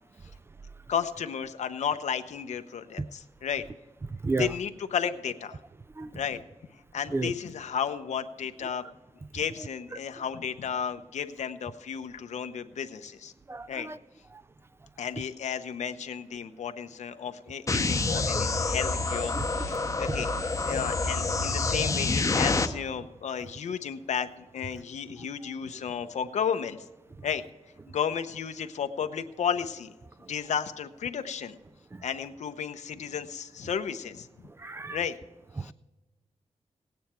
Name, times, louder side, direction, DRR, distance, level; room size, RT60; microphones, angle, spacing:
voice 1, 0.9-3.6 4.4-5.6 6.1-6.4 6.9-8.8 9.3-13.3 13.7-13.9 15.0-26.8 27.2-27.4 27.9-29.9 30.3-31.6 32.0-34.3 34.9-35.2 35.6-35.7, left 7 dB, 80° left, 9 dB, 0.8 m, -33 dB
voice 2, 13.5-14.0 19.3-19.5 31.9-32.0 34.6-35.0 35.6-35.7, right 3 dB, 20° right, 13 dB, 0.3 m, -31 dB
sound 1, 17.7-22.7, left 3 dB, 30° left, 0.8 m, -27 dB
17.5 x 9.3 x 4.5 m, 1.2 s
wide cardioid pair, 135°, 12 cm